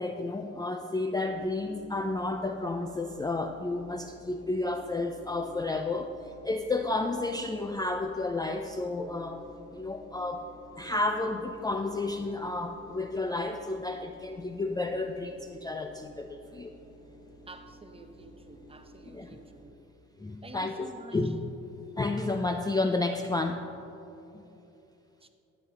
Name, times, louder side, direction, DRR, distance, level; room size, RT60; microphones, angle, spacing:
voice 1, 0.0-6.1 6.4-9.4 9.7-10.5 10.8-16.7 19.0-19.4 20.2-21.4 22.0-23.6 24.3-24.4, left 2 dB, 15° left, 5 dB, 0.4 m, -31 dB
sound 1, 1.3-19.6, right 1 dB, 85° left, 1.8 m, -53 dB
voice 2, 17.5-19.8 20.4-21.3 25.2-25.3, right 2 dB, 20° right, 7 dB, 0.7 m, -49 dB
12.5 x 7.9 x 3.7 m, 2.9 s
cardioid pair, 90°, 30 cm